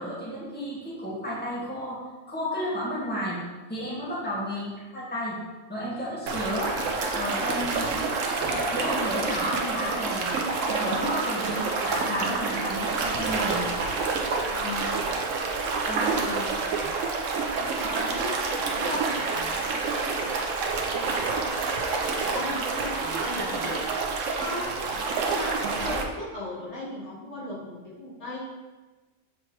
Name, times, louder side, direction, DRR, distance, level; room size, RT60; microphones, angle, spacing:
voice 1, 0.0-2.0 2.3-3.4 3.7-5.4 5.7-6.7 7.1-7.9 8.5-10.3 10.7-13.6 14.7-15.0 15.9-16.2, equal, 10° left, -9 dB, 1.9 m, -32 dB
sound 1, 6.3-26.0, right 4 dB, 85° right, 1.1 m, -28 dB
Bass guitar, 11.9-15.8, left 6 dB, 20° right, 0.8 m, -46 dB
voice 2, 14.5-14.9 16.0-16.5 17.8-19.5 21.1-21.3 22.2-23.8 24.4-24.7 25.3-28.4, left 1 dB, 65° left, -7 dB, 1.8 m, -37 dB
6.9 x 4.4 x 3.2 m, 1.2 s
omnidirectional pair, 1.3 m